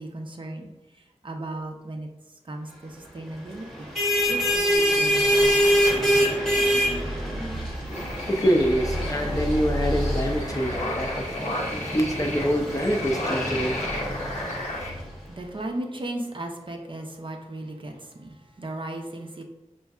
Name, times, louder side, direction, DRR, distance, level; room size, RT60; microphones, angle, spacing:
voice 1, 0.0-2.1 2.4-3.9 4.3-5.6 14.5-19.4, right 1 dB, 40° right, 3 dB, 0.5 m, -36 dB
sound 1, 3.7-15.0, equal, ahead, 0.9 m, -25 dB
sound 2, 7.9-14.9, left 1 dB, 70° left, 0.8 m, -33 dB
voice 2, 7.9-14.9, equal, 25° left, 2 dB, 0.5 m, -26 dB
4.2 x 2.6 x 2.4 m, 0.97 s
wide cardioid pair, 45°, 13 cm